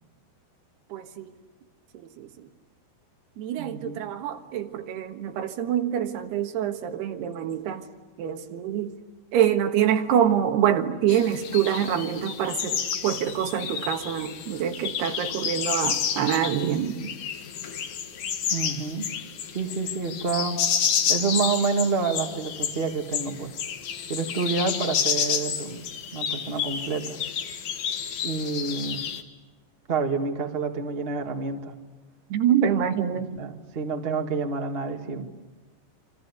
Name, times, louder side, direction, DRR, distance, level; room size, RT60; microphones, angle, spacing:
voice 1, 0.9-1.3 1.9-2.3 3.4-7.9 8.2-8.9 9.3-16.9 32.3-33.3, right 9 dB, 80° right, 3.4 m, -25 dB
voice 2, 3.6-4.0 16.6-17.1 18.5-19.1 19.5-20.6 21.1-23.5 24.1-25.9 26.1-27.2 28.2-29.1 29.9-31.7 33.1-35.3, right 4 dB, 55° right, 0.6 m, -28 dB
sound 1, 11.1-29.2, left 8 dB, 55° left, 2.5 m, -30 dB
28.0 x 26.0 x 8.2 m
omnidirectional pair, 4.7 m